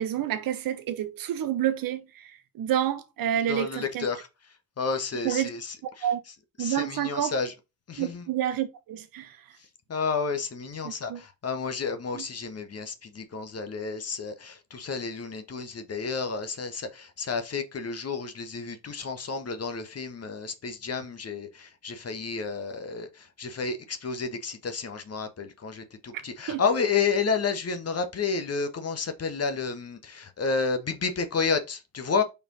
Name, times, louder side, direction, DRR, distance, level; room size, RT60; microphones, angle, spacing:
voice 1, 0.0-4.1 5.2-5.5 6.0-6.2 6.6-7.3 8.0-9.4 10.8-11.2 12.1-12.3 26.5-26.6, right 11 dB, 50° right, 0.9 m, -29 dB
voice 2, 3.5-4.3 4.8-6.0 6.6-7.5 7.9-8.2 9.9-32.2, left 5 dB, 35° left, 1.4 m, -31 dB
5.4 x 4.5 x 4.1 m
figure-of-eight pair, 40°, 43 cm